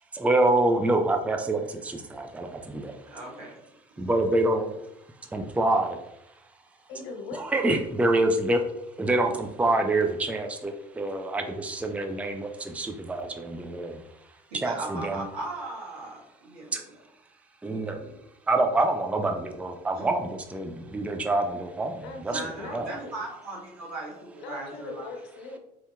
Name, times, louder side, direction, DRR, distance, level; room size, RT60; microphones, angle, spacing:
voice 1, 0.1-2.9 4.0-4.7 5.3-6.0 7.4-8.6 9.0-14.0 14.5-15.2 16.7-16.8 17.6-18.2 18.5-22.4 22.7-22.9, right 2 dB, 5° right, 4 dB, 0.4 m, -26 dB
voice 2, 3.1-3.6 4.0-4.1 14.5-17.0 19.9-20.1 22.3-25.0, right 2 dB, 75° right, -4 dB, 1.2 m, -38 dB
voice 3, 6.9-7.7 22.0-23.1 24.4-25.6, left 3 dB, 65° left, 2 dB, 0.8 m, -40 dB
4.4 x 2.7 x 2.2 m, 0.85 s
hypercardioid pair, 55°, 21 cm